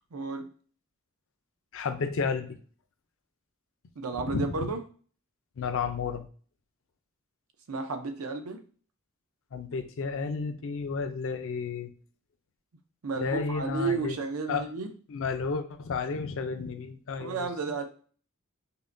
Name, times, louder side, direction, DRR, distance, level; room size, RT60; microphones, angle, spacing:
voice 1, 0.1-0.5 4.0-4.8 7.7-8.6 13.0-14.9 17.2-17.8, right 4 dB, 85° right, 6 dB, 0.6 m, -32 dB
voice 2, 1.7-2.6 4.3-4.7 5.6-6.2 9.5-11.9 13.2-14.2 14.5-14.7 15.1-17.5, left 5 dB, 65° left, 8 dB, 0.5 m, -32 dB
5.5 x 2.2 x 2.6 m, 0.42 s
head